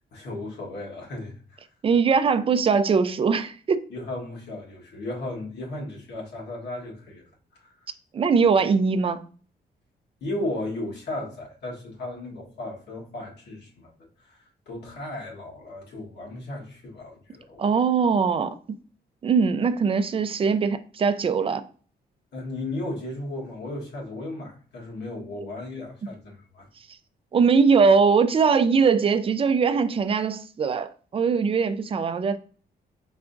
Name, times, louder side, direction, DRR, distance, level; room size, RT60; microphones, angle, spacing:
voice 1, 0.1-1.6 3.9-7.2 7.5-7.7 10.2-13.9 14.3-14.4 14.7-17.7 22.3-26.7, left 2 dB, 75° left, 1.4 m, -35 dB
voice 2, 1.8-3.8 8.1-9.3 17.6-18.5 19.2-21.6 26.0-26.1 27.3-32.4, right 5 dB, 30° right, 0.4 m, -21 dB
4.8 x 3.3 x 2.5 m
cardioid pair, 130°, 18 cm